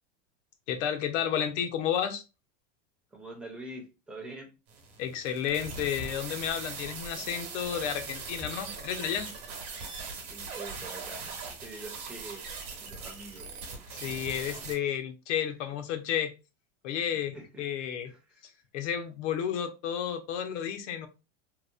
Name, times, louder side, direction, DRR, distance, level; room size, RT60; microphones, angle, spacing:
voice 1, 0.7-2.2 5.0-9.3 13.9-16.3 16.8-18.1 18.7-21.1, left 9 dB, 90° left, 0.6 m, -32 dB
voice 2, 3.1-4.5 10.3-11.3 11.6-12.5 12.8-13.5 17.1-17.6 18.0-18.2, right 2 dB, 5° right, 0.4 m, -44 dB
sound 1, 4.7-14.7, right 4 dB, 50° right, 0.9 m, -40 dB
2.8 x 2.0 x 2.3 m
supercardioid pair, 145°, 36 cm